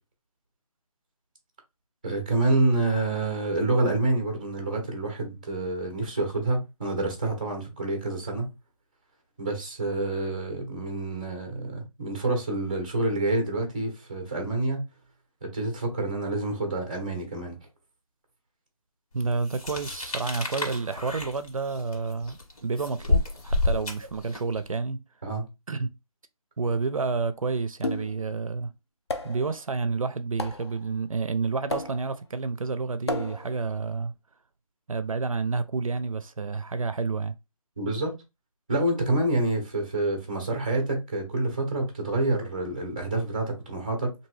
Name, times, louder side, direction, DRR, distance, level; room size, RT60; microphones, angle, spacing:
voice 1, 2.0-8.5 9.4-14.8 15.5-17.6 25.2-25.5 37.8-38.1 38.7-44.1, right 2 dB, 15° right, 0.5 m, -27 dB
voice 2, 19.1-25.0 25.7-25.9 26.6-28.7 29.2-34.1 34.9-37.3, right 4 dB, 65° right, 0.4 m, -29 dB
sound 1, 19.5-24.6, left 2 dB, 70° left, 1.7 m, -29 dB
sound 2, 27.8-28.3 29.1-29.5 30.4-30.8 31.7-32.2 33.1-33.6, left 2 dB, 45° left, 0.5 m, -33 dB
2.8 x 2.6 x 3.1 m
figure-of-eight pair, 165°, 19 cm